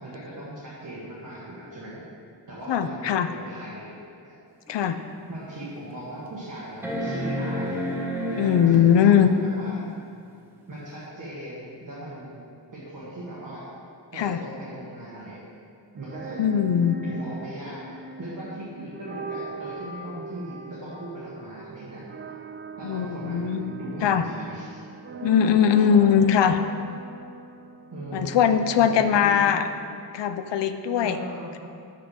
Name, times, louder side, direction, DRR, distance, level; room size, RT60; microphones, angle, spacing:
voice 1, 0.0-2.0 2.5-3.9 4.2-4.3 4.8-5.0 5.3-7.8 8.3-9.8 10.7-12.4 12.7-13.6 14.1-15.4 15.9-16.6 17.0-17.8 18.2-22.0 22.8-24.8 25.6-26.2 27.9-29.6 31.0-31.5, right 1 dB, 45° right, -8 dB, 1.5 m, -38 dB
voice 2, 2.7-3.3 4.7-5.0 8.4-9.3 14.2-14.4 16.4-17.0 22.8-24.2 25.2-26.6 28.1-29.6 30.1-31.2, left 8 dB, 80° left, 10 dB, 0.5 m, -20 dB
sound 1, 4.7-4.8 5.4-5.5 6.8-9.3 11.0-11.1, equal, 5° right, 0.9 m, -30 dB
sound 2, 16.0-28.9, right 3 dB, 30° right, 0.4 m, -40 dB
6.0 x 5.8 x 6.4 m, 2.4 s
wide cardioid pair, 160°, 42 cm